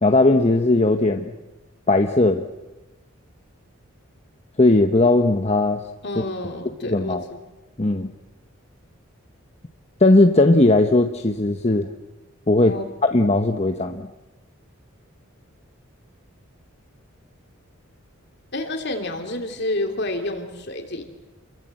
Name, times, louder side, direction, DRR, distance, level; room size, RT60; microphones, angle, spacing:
voice 1, 0.0-1.3 1.9-2.5 4.6-5.8 6.8-7.3 7.8-8.1 10.0-11.9 12.5-12.8 13.1-14.1, left 2 dB, 30° left, 6 dB, 0.9 m, -18 dB
voice 2, 6.0-7.2 12.6-12.9 18.5-21.0, left 1 dB, 50° left, 4 dB, 3.2 m, -29 dB
29.5 x 22.5 x 7.7 m, 1.1 s
head